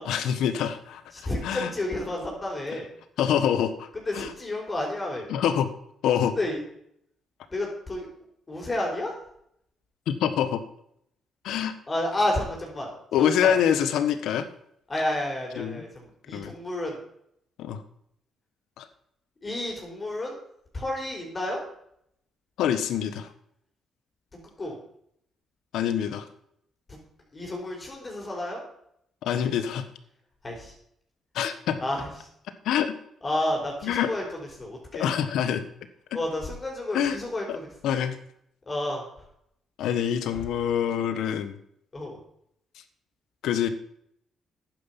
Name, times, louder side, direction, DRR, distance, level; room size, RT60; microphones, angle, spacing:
voice 1, 0.0-1.7 3.2-3.9 4.1-4.3 5.3-5.7 6.0-6.4 10.1-10.6 11.4-11.7 13.1-14.5 15.6-15.8 16.3-16.5 17.6-17.8 18.8-18.9 22.6-23.3 25.7-26.3 29.2-29.9 31.3-31.8 32.6-32.9 33.8-34.1 35.0-35.6 36.9-37.2 37.8-38.2 39.8-41.6 43.4-43.7, left 9 dB, 80° left, 11 dB, 1.3 m, -25 dB
voice 2, 1.1-2.9 3.9-5.3 6.4-6.6 7.5-8.1 8.5-9.1 11.9-12.9 13.2-13.5 14.9-17.0 19.4-20.4 20.7-21.6 24.6-24.8 26.9-27.0 27.3-28.6 30.4-30.7 31.8-32.3 33.2-35.1 36.1-37.7 38.7-39.3 40.3-40.4 41.9-42.2, left 1 dB, 30° left, -1 dB, 4.7 m, -31 dB
11.0 x 9.5 x 5.9 m, 0.72 s
cardioid pair, 90°, 0 cm